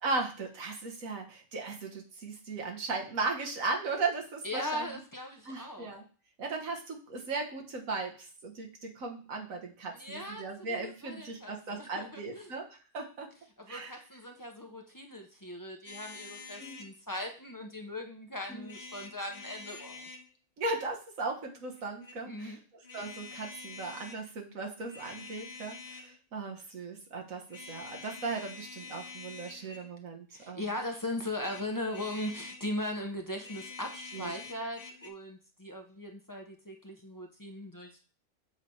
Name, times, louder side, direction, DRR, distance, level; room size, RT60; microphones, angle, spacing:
voice 1, 0.0-5.0 5.5-6.0 6.4-13.3 13.7-13.9 16.6-16.8 18.5-18.7 20.6-22.6 22.9-30.6 34.1-34.3, right 3 dB, 70° right, 1 dB, 1.8 m, -37 dB
voice 2, 4.4-5.9 9.9-12.5 13.6-20.1 22.3-22.6 30.3-38.1, left 1 dB, 20° left, 2 dB, 0.7 m, -39 dB
sound 1, 15.9-16.9 18.6-20.3 21.8-22.2 22.8-24.2 24.8-26.2 27.5-29.9 31.3-32.7 33.3-35.1, left 4 dB, 35° left, 1.0 m, -47 dB
7.3 x 3.4 x 5.5 m, 0.38 s
omnidirectional pair, 1.5 m